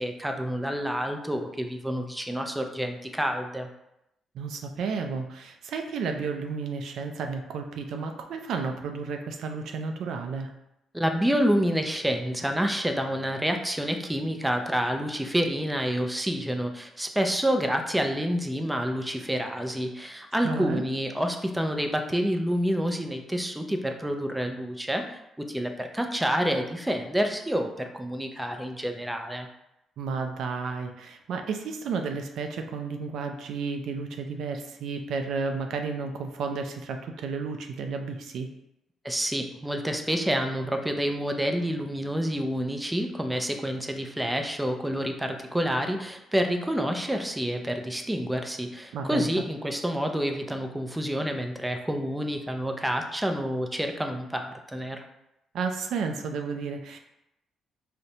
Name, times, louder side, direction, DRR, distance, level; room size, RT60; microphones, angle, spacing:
voice 1, 0.0-3.7 10.9-25.2 25.5-29.5 39.0-55.0, equal, 5° right, 4 dB, 0.4 m, -28 dB
voice 2, 4.3-10.5 20.4-20.8 30.0-38.5 48.9-49.3 55.5-57.0, right 5 dB, 75° right, 5 dB, 0.3 m, -32 dB
4.0 x 2.1 x 2.7 m, 0.86 s
cardioid pair, 90°, 0 cm